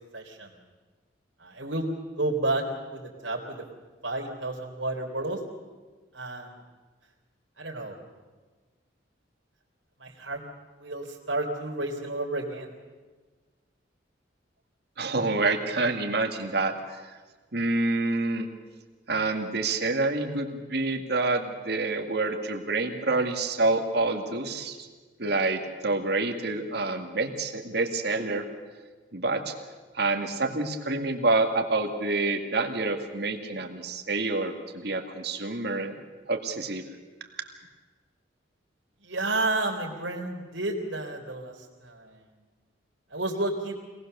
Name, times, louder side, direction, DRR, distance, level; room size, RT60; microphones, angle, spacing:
voice 1, 0.1-0.5 1.4-3.6 4.0-5.4 6.1-6.6 7.6-8.0 10.0-10.4 10.8-12.7 39.0-42.2 43.1-43.7, right 2 dB, 85° right, -1 dB, 3.4 m, -31 dB
voice 2, 15.0-16.7 17.5-18.5 19.1-24.9 25.2-28.5 29.1-29.5 29.9-36.0 36.3-36.8 37.4-37.5, right 3 dB, 60° right, 5 dB, 2.0 m, -27 dB
25.5 x 19.0 x 6.8 m, 1.4 s
head